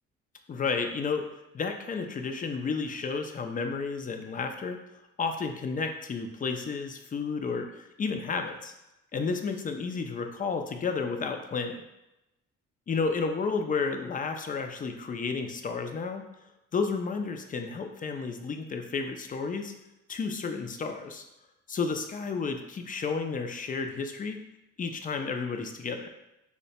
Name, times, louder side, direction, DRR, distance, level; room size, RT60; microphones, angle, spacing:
voice 1, 0.5-1.2 1.5-4.8 5.2-8.7 9.1-11.8 12.9-16.2 16.7-19.7 20.1-21.2 21.7-24.4 24.8-26.1, left 4 dB, 30° left, 5 dB, 0.4 m, -32 dB
2.8 x 2.2 x 4.1 m, 0.93 s
cardioid pair, 90°, 30 cm